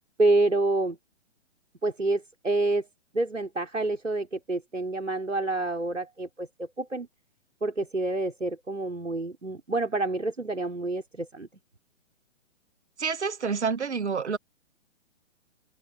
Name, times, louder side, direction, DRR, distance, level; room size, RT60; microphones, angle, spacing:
voice 1, 0.2-1.0 1.8-2.9 3.1-7.1 7.6-11.5, right 2 dB, 80° right, 4.8 m, -28 dB
voice 2, 13.0-14.4, right 5 dB, 65° right, 2.3 m, -28 dB
figure-of-eight pair, 125°, 37 cm